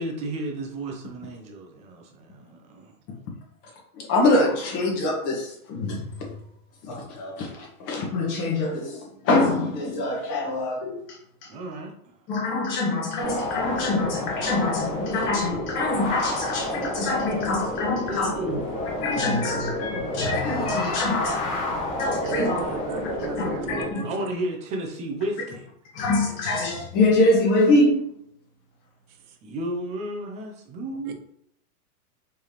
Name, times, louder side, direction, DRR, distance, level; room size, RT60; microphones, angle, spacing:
voice 1, 0.0-2.9 11.5-12.1 17.8-18.9 19.2-19.4 19.9-20.3 24.0-25.6 29.4-31.1, right 1 dB, 15° right, 0.4 m, -33 dB
voice 2, 3.9-6.3 6.8-11.5 12.3-18.3 19.0-22.6 23.0-23.1 23.4-24.1 25.9-28.1, left 2 dB, 40° left, 1.5 m, -25 dB
sound 1, 13.2-23.9, left 1 dB, 25° left, 1.1 m, -30 dB
voice 3, 22.2-24.3 31.1-31.2, right 5 dB, 70° right, 1.1 m, -34 dB
4.7 x 3.4 x 2.9 m
hypercardioid pair, 135°, 46 cm